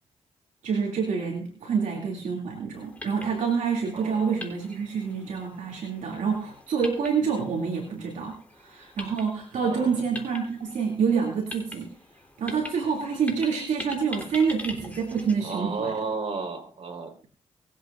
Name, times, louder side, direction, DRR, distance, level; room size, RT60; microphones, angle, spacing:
voice 1, 0.6-11.9 12.4-15.9, right 6 dB, 75° right, -1 dB, 2.6 m, -27 dB
sound 1, 2.7-15.4, left 1 dB, 10° left, 3.7 m, -44 dB
voice 2, 3.9-4.4 9.6-9.9 15.4-17.1, right 4 dB, 50° right, 4 dB, 4.2 m, -33 dB
23.5 x 8.3 x 2.5 m, 0.41 s
supercardioid pair, 45°, 13 cm